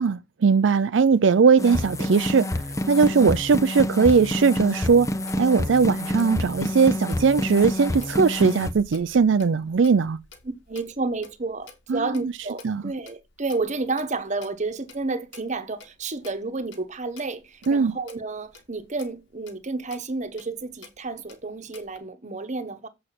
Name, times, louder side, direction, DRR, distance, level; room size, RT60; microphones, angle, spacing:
voice 1, 0.0-2.6 2.9-5.1 5.4-10.2 11.9-12.3 12.6-12.8 17.7-17.9, right 5 dB, 80° right, 0.5 m, -19 dB
sound 1, 1.6-8.7, left 1 dB, 15° left, 0.9 m, -28 dB
Clock, 4.2-22.0, left 4 dB, 80° left, 2.5 m, -51 dB
voice 2, 10.7-22.9, right 3 dB, 40° right, 1.2 m, -31 dB
7.9 x 6.5 x 5.8 m
head